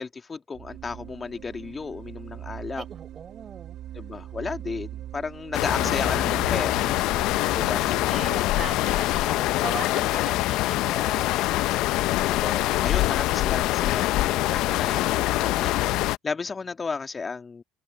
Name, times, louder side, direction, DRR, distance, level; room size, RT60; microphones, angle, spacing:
voice 1, 0.0-2.8 3.9-6.9 7.5-8.0 12.3-17.6, left 4 dB, 25° left, 1.7 m, -34 dB
sound 1, 0.5-10.3, right 12 dB, 60° right, 2.5 m, -41 dB
voice 2, 2.7-3.8 5.8-6.0 6.3-6.4 7.7-11.6, right 7 dB, 35° right, 6.9 m, -40 dB
Wind in trees beside river, 5.5-16.2, left 17 dB, 65° left, 0.6 m, -24 dB
supercardioid pair, 90°, 0 cm